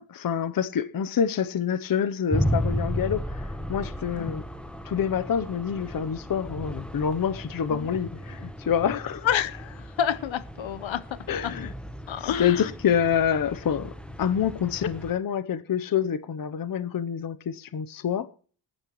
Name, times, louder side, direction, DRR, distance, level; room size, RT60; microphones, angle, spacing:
voice 1, 0.1-4.4 4.8-9.3 11.3-11.7 12.2-18.3, left 8 dB, 45° left, 0.8 m, -27 dB
sound 1, 2.3-15.1, equal, ahead, 0.9 m, -34 dB
voice 2, 8.9-11.5 12.1-12.7, left 9 dB, 70° left, 1.0 m, -29 dB
20.0 x 11.0 x 3.1 m
wide cardioid pair, 175°, 48 cm